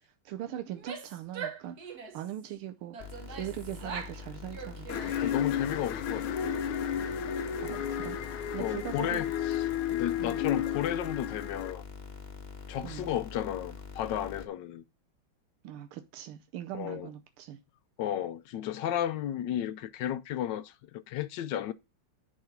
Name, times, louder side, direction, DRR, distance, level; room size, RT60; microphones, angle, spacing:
voice 1, 0.0-3.0 3.3-4.9 7.6-8.2 8.5-9.2 10.2-10.4 12.8-13.1 15.6-17.6, right 12 dB, 90° right, 1.6 m, -40 dB
Female speech woman speaking / Yell, 0.7-2.3 2.9-4.2 4.5-5.5, right 6 dB, 50° right, 1.6 m, -42 dB
sound 1, 3.0-14.5, left 5 dB, 30° left, 0.9 m, -45 dB
sound 2, 4.9-11.7, left 9 dB, 90° left, 1.6 m, -32 dB
voice 2, 5.2-6.5 8.6-9.6 9.9-11.8 12.7-14.8 16.7-17.1 18.0-21.7, left 11 dB, 70° left, 1.1 m, -33 dB
10.5 x 3.8 x 5.8 m
omnidirectional pair, 2.3 m